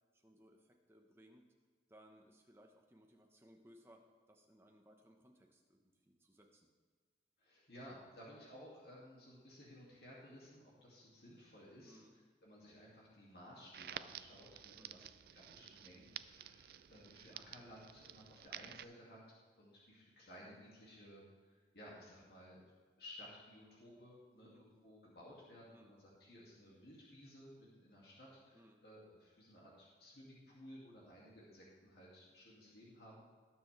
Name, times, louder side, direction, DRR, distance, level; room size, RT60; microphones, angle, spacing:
voice 1, 0.1-1.5 1.9-6.7 8.4-8.5 11.8-12.2 14.8-15.1 24.4-24.6 25.7-25.9 28.5-28.8, equal, 15° right, 2 dB, 1.1 m, -64 dB
voice 2, 7.4-12.0 12.4-19.2 19.6-22.6 23.0-33.2, equal, 60° left, -5 dB, 2.4 m, -57 dB
Crackle, 13.7-18.8, right 10 dB, 55° right, 0.3 m, -52 dB
18.5 x 7.1 x 3.4 m, 1.6 s
head